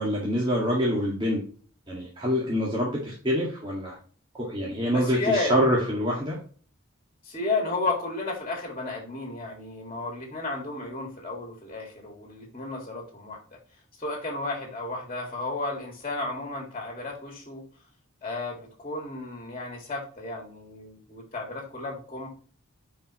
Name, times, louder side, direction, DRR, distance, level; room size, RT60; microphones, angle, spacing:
voice 1, 0.0-1.4 1.9-4.0 4.4-6.4, equal, 25° right, -5 dB, 1.9 m, -26 dB
voice 2, 4.9-5.7 7.2-13.4 14.0-17.6 18.2-22.3, left 3 dB, 25° left, 1 dB, 2.1 m, -33 dB
10.5 x 4.7 x 3.1 m, 0.42 s
head